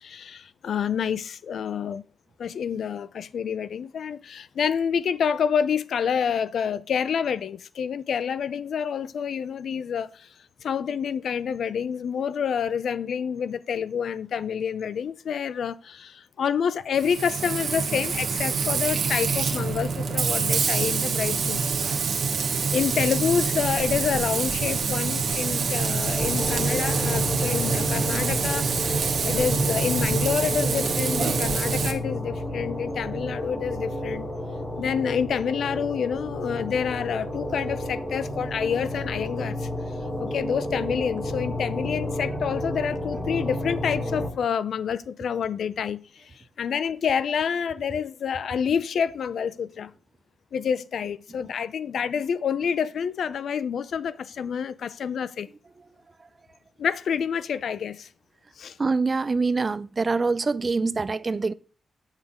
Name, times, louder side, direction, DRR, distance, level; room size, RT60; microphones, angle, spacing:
voice 1, 0.0-2.0 2.4-10.3 10.6-21.6 22.7-34.3 34.8-39.7 40.2-49.9 50.5-55.5 56.8-58.1 58.6-58.8, left 7 dB, 80° left, 0.4 m, -28 dB
Frying (food), 16.9-31.9, right 5 dB, 65° right, 1.2 m, -26 dB
sound 1, 26.2-44.3, left 1 dB, 25° left, 3.4 m, -31 dB
voice 2, 58.8-61.5, right 4 dB, 30° right, 0.3 m, -25 dB
8.7 x 5.6 x 3.6 m
wide cardioid pair, 125°, 0 cm